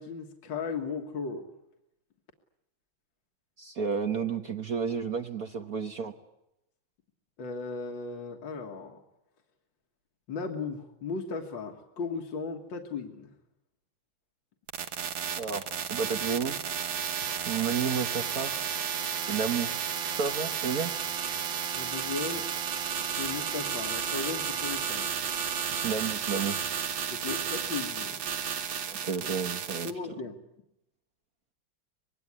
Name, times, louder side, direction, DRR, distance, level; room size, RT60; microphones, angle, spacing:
voice 1, 0.0-1.5 7.4-9.0 10.3-13.3 21.7-22.5 23.2-25.1 27.1-28.2 29.8-30.4, left 4 dB, 65° left, 3 dB, 2.3 m, -36 dB
voice 2, 3.6-6.1 15.4-16.6 17.5-18.7 19.2-19.8 20.2-20.9 25.7-26.6 28.9-29.9, right 6 dB, 50° right, 6 dB, 1.5 m, -31 dB
sound 1, 14.7-29.9, right 8 dB, 75° right, 2.0 m, -32 dB
24.5 x 21.0 x 9.6 m, 0.88 s
omnidirectional pair, 2.2 m